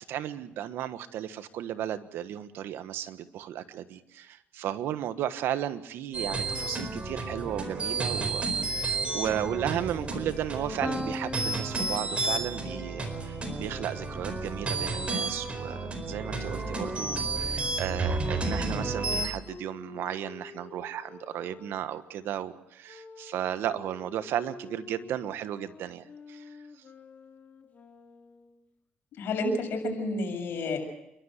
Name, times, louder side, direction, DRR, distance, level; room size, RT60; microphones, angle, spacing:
voice 1, 0.1-26.5, right 11 dB, 75° right, 12 dB, 1.3 m, -34 dB
sound 1, 6.1-19.3, right 3 dB, 30° right, 4.5 m, -32 dB
Piano, 10.8-16.6, left 1 dB, 10° left, 1.4 m, -42 dB
Wind instrument woodwind instrument, 16.2-22.1 22.9-28.6, left 4 dB, 45° left, 3.1 m, -49 dB
voice 2, 29.1-30.8, left 2 dB, 70° left, 3 dB, 7.1 m, -30 dB
28.5 x 12.5 x 8.1 m, 0.87 s
cardioid pair, 90°, 4 cm